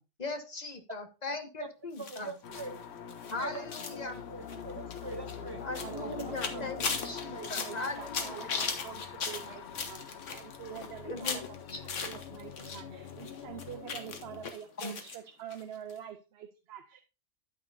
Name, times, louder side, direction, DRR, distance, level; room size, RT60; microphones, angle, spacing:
voice 1, 0.2-2.3 3.3-4.2 5.6-8.6 11.1-11.8 14.8-15.0, left 3 dB, 35° left, 6 dB, 1.1 m, -39 dB
voice 2, 1.3-1.7 2.0-2.8 3.3-3.7 3.9-5.6 6.0-6.7, right 3 dB, 35° right, 8 dB, 0.4 m, -43 dB
sound 1, 2.0-12.8 13.1-15.2 15.5-15.6 15.9-16.0, left 5 dB, 85° left, 1.5 m, -39 dB
sound 2, 2.4-14.5, left 8 dB, 65° left, 1.0 m, -44 dB
voice 3, 5.0-11.6 11.8-17.0, right 9 dB, 65° right, 8 dB, 0.9 m, -46 dB
9.0 x 8.8 x 2.6 m, 0.30 s
omnidirectional pair, 1.2 m